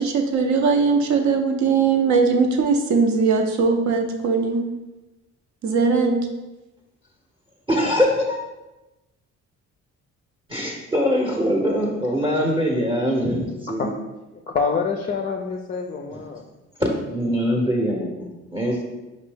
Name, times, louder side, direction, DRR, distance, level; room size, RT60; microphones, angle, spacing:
voice 1, 0.0-4.7 5.6-6.3, right 4 dB, 70° right, 5 dB, 0.7 m, -20 dB
voice 2, 7.7-8.4 10.5-13.9 16.8-18.8, equal, 15° right, -2 dB, 0.7 m, -23 dB
voice 3, 14.5-16.4, left 5 dB, 30° left, 3 dB, 0.4 m, -26 dB
5.1 x 2.6 x 3.4 m, 1.1 s
cardioid pair, 90°, 30 cm